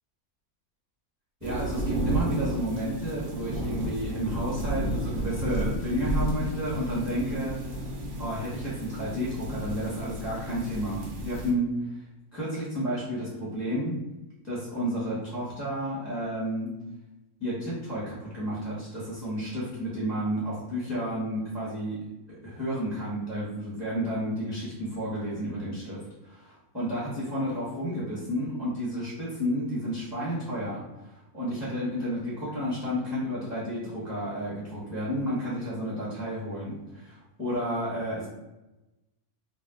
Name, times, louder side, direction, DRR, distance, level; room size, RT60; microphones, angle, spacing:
voice 1, 1.4-7.6 8.2-12.0 12.3-14.0 14.4-16.7 17.4-22.0 22.3-38.3, equal, ahead, -9 dB, 1.0 m, -31 dB
sound 1, 1.4-11.5, right 1 dB, 60° right, 0.9 m, -32 dB
2.7 x 2.2 x 3.6 m, 1.0 s
omnidirectional pair, 1.6 m